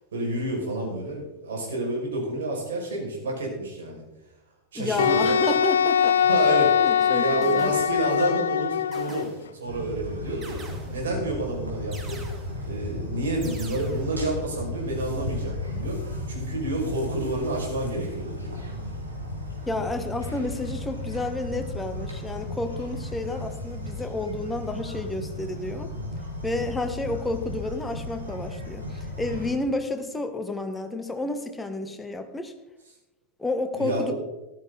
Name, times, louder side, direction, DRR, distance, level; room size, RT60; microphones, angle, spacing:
voice 1, 0.1-4.0 4.7-5.3 6.3-9.3 9.5-10.6 10.9-12.2 12.6-18.6 26.6-26.7 33.8-34.1, right 2 dB, 65° right, -1 dB, 5.8 m, -29 dB
voice 2, 4.7-6.2 6.8-7.3 7.5-7.7 19.7-25.9 26.4-32.5 33.4-34.1, left 2 dB, 10° left, 7 dB, 1.4 m, -30 dB
Wind instrument woodwind instrument, 5.0-9.3, left 8 dB, 65° left, 0.4 m, -22 dB
sound 1, 6.4-6.6 7.4-8.2 8.9-9.7 10.4-11.2 11.9-12.7 13.4-14.2, right 3 dB, 20° right, 2.4 m, -45 dB
sound 2, 9.6-29.6, left 1 dB, 80° right, 3.5 m, -34 dB
14.5 x 12.5 x 4.0 m, 1.0 s
figure-of-eight pair, 90°, 0 cm